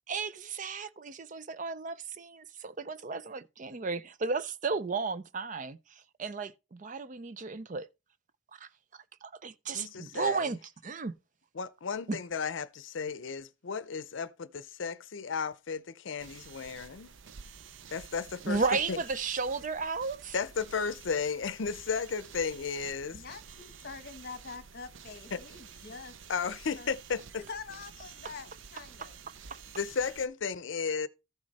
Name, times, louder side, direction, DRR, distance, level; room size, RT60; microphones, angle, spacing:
voice 1, 0.1-7.9 8.5-8.7 9.2-11.1 12.1-12.2 18.4-20.4 29.0-29.1 29.5-29.6, right 4 dB, 40° right, 0.5 m, -34 dB
voice 2, 9.7-10.5 11.6-17.1 17.9-19.0 20.3-23.2 25.3-25.4 26.3-27.2 29.8-31.1, left 5 dB, 75° left, 0.6 m, -34 dB
sound 1, 16.2-30.3, right 6 dB, 80° right, 0.6 m, -51 dB
voice 3, 23.1-26.1 26.8-26.9 27.5-29.2, left 4 dB, 50° left, 1.1 m, -45 dB
13.5 x 6.3 x 4.0 m
head